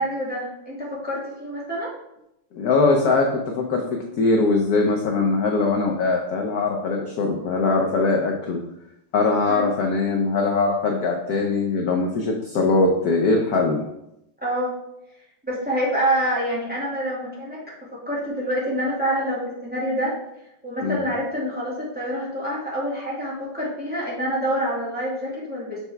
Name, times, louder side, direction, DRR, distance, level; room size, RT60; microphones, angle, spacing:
voice 1, 0.0-1.9 9.5-9.7 14.4-14.7 15.4-17.6 18.0-20.1 20.6-25.8, right 1 dB, 5° right, -7 dB, 1.7 m, -26 dB
voice 2, 2.5-3.8 4.2-8.6 9.1-13.8 20.8-21.1, left 3 dB, 70° left, 1 dB, 0.9 m, -21 dB
6.8 x 4.6 x 3.3 m, 0.83 s
omnidirectional pair, 2.4 m